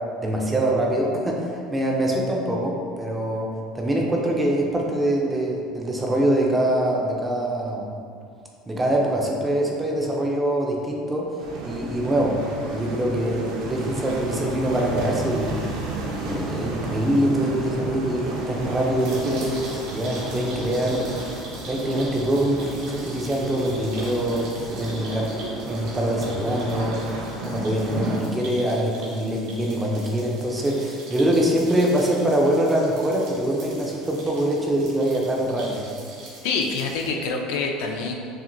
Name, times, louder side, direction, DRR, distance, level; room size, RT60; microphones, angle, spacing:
voice 1, 0.2-8.0 8.7-11.4 11.6-12.4 12.7-15.8 16.0-21.3 21.6-35.8, right 1 dB, 10° right, -1 dB, 0.4 m, -24 dB
sound 1, 11.4-28.2, right 2 dB, 65° right, 0.7 m, -33 dB
sound 2, 19.0-37.1, right 2 dB, 90° right, 1.2 m, -42 dB
voice 2, 36.4-38.1, left 4 dB, 70° left, 2 dB, 0.4 m, -26 dB
5.8 x 2.5 x 2.6 m, 2.3 s
cardioid pair, 170°, 0 cm